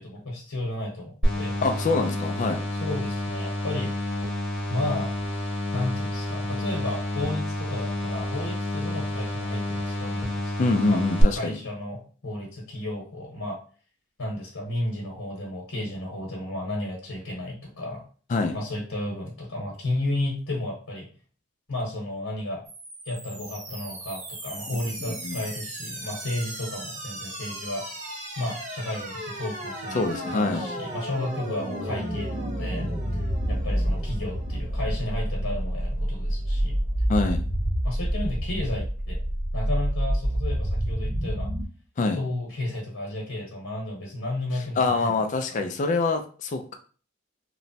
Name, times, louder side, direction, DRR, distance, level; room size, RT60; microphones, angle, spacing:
voice 1, 0.0-1.5 2.8-3.9 4.7-5.1 5.7-11.0 11.3-13.6 14.2-18.0 18.5-21.1 21.7-22.6 23.1-27.9 28.4-33.2 33.5-36.8 37.8-39.2 39.5-41.5 42.2-45.2 45.5-45.6, left 1 dB, 90° left, -2 dB, 0.9 m, -33 dB
sound 1, 1.2-11.2, left 1 dB, 5° left, 1.0 m, -29 dB
voice 2, 1.6-2.6 10.6-11.6 18.3-18.6 25.0-25.4 29.9-30.6 37.1-37.4 42.0-42.2 44.8-46.7, left 3 dB, 35° left, 6 dB, 0.3 m, -25 dB
sound 2, 22.7-41.7, equal, 35° right, 0.5 m, -30 dB
3.0 x 2.1 x 2.7 m, 0.39 s
head